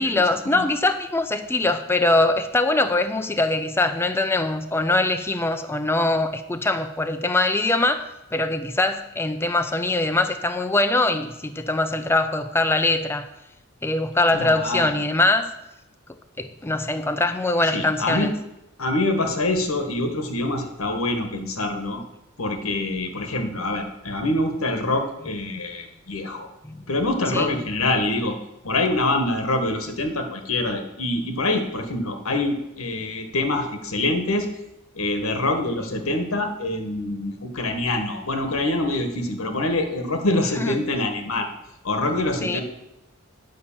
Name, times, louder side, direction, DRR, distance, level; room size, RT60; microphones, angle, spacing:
voice 1, 0.0-13.3 13.8-15.5 16.4-18.3 26.6-26.8 27.3-27.5 40.6-40.8 42.4-42.6, left 2 dB, 10° left, 8 dB, 0.4 m, -22 dB
voice 2, 14.3-14.9 17.7-18.3 18.8-22.0 22.4-26.5 26.9-28.3 28.6-34.5 34.9-41.5 41.8-42.6, left 2 dB, 85° left, 6 dB, 1.4 m, -25 dB
9.6 x 5.5 x 7.2 m, 0.89 s
head